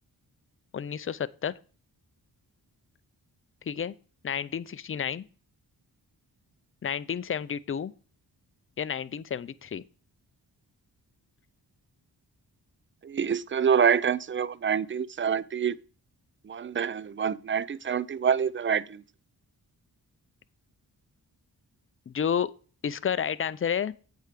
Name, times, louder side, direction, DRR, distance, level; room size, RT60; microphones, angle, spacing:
voice 1, 0.7-1.6 3.7-4.0 4.2-5.3 6.8-7.9 8.8-9.8 22.1-22.5 22.8-23.9, left 8 dB, 30° left, 0.5 m, -30 dB
voice 2, 13.0-15.8 16.5-19.0, right 7 dB, 30° right, 0.5 m, -26 dB
8.2 x 4.6 x 5.0 m
cardioid pair, 55°, 41 cm